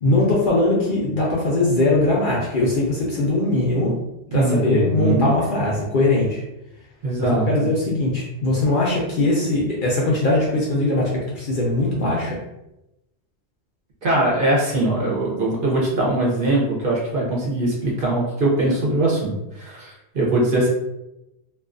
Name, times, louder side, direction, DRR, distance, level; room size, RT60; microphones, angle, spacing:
voice 1, 0.0-3.9 4.3-6.4 7.2-12.4, left 2 dB, 60° left, -4 dB, 0.6 m, -20 dB
voice 2, 4.3-5.3 7.0-7.7 14.0-20.7, right 2 dB, 55° right, -4 dB, 0.8 m, -21 dB
2.4 x 2.3 x 2.4 m, 0.91 s
omnidirectional pair, 1.2 m